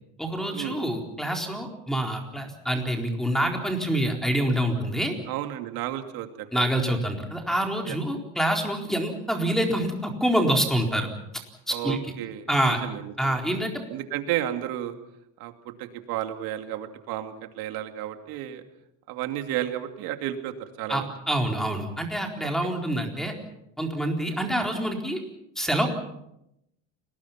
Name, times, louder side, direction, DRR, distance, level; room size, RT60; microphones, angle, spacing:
voice 1, 0.2-5.1 6.5-11.1 11.7-12.0 12.5-12.8 13.2-13.7 20.9-23.3 23.8-25.2 25.6-25.9, right 1 dB, ahead, 2 dB, 4.2 m, -26 dB
voice 2, 5.3-6.6 7.9-8.0 11.7-13.4 13.9-14.9 15.4-18.6 19.1-21.1 22.6-22.7, right 12 dB, 70° right, 6 dB, 2.7 m, -32 dB
29.5 x 20.5 x 5.9 m, 0.83 s
cardioid pair, 135°, 37 cm